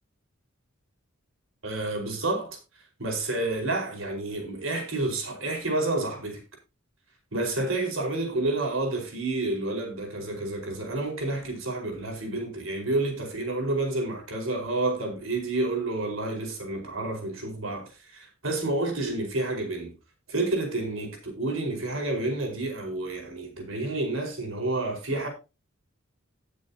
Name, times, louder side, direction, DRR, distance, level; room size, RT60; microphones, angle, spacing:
voice 1, 1.6-2.6 3.0-6.4 7.3-19.9 20.3-25.3, right 2 dB, 70° right, 4.9 m, -29 dB
18.5 x 7.1 x 2.8 m
head